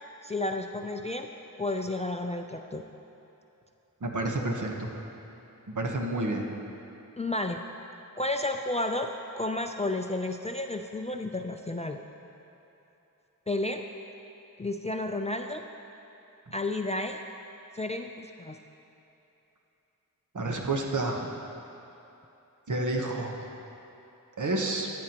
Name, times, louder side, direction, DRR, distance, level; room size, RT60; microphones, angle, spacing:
voice 1, 0.2-1.3 1.6-2.8 7.2-7.6 8.2-12.0 13.5-13.8 14.6-15.6 16.5-17.2 17.7-18.6, left 2 dB, 20° left, 4 dB, 0.3 m, -31 dB
voice 2, 4.0-4.9 5.7-6.5 20.3-21.3 22.7-23.5 24.4-24.9, right 2 dB, 60° right, 1 dB, 1.1 m, -30 dB
14.5 x 9.3 x 2.9 m, 2.9 s
wide cardioid pair, 85°, 34 cm